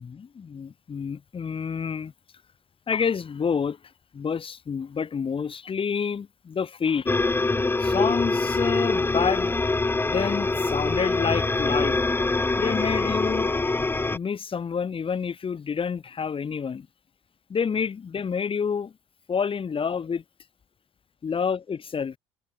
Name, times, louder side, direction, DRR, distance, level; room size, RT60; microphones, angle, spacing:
voice 1, 0.0-2.1 2.9-3.8 4.1-7.2 7.8-9.5 10.1-12.0 12.6-13.5 14.1-16.9 17.5-18.9 19.3-20.2 21.2-22.1, left 6 dB, 35° left, 2.8 m, -28 dB
sound 1, 7.1-14.2, left 3 dB, 15° left, 0.8 m, -24 dB
hypercardioid pair, 65°, 16 cm